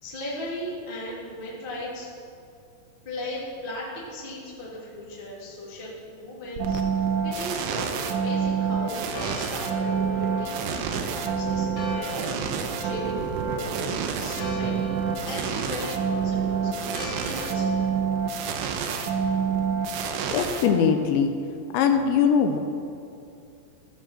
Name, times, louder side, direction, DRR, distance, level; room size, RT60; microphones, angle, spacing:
voice 1, 0.0-2.1 3.0-12.2 12.5-14.9 15.2-17.7, left 1 dB, 20° left, -6 dB, 1.6 m, -37 dB
sound 1, 6.6-21.2, right 6 dB, 80° right, 2.9 m, -27 dB
Church bell, 7.3-17.9, left 3 dB, 60° left, 3.3 m, -43 dB
voice 2, 20.3-21.3 21.7-22.6, left 7 dB, 85° left, 5 dB, 2.5 m, -21 dB
15.5 x 7.3 x 7.5 m, 2.6 s
omnidirectional pair, 6.0 m